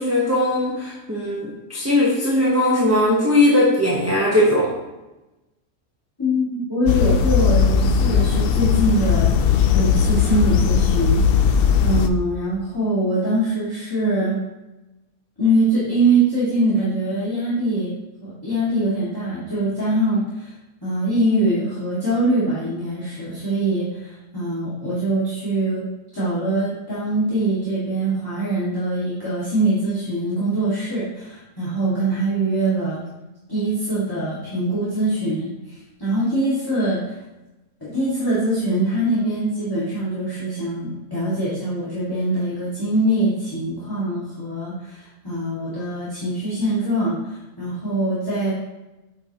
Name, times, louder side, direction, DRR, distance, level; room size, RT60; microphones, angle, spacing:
voice 1, 0.0-4.7, left 1 dB, 10° right, -5 dB, 0.9 m, -19 dB
voice 2, 6.2-11.5 11.8-14.4 15.4-17.9 18.2-20.5 20.8-25.8 26.1-33.0 33.5-37.2 37.8-48.5, right 1 dB, 15° left, -10 dB, 1.9 m, -23 dB
sound 1, 6.9-12.1, left 7 dB, 80° left, 0.5 m, -18 dB
8.3 x 5.5 x 2.9 m, 1.0 s
omnidirectional pair, 1.5 m